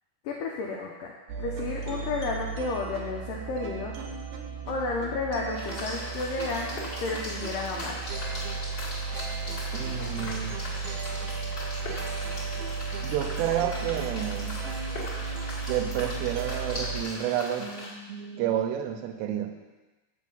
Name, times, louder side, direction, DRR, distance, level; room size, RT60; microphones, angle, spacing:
voice 1, 0.2-1.1 1.4-3.9 4.7-6.7 7.0-8.0, left 3 dB, 85° left, -1 dB, 1.9 m, -32 dB
sound 1, 1.3-17.0, right 5 dB, 70° right, 2.2 m, -35 dB
sound 2, 5.5-17.9, left 1 dB, 40° left, 1.4 m, -39 dB
voice 2, 9.7-10.6 13.0-14.6 15.7-19.5, right 10 dB, 90° right, 5 dB, 2.9 m, -30 dB
7.3 x 6.2 x 5.4 m, 1.2 s
omnidirectional pair, 4.9 m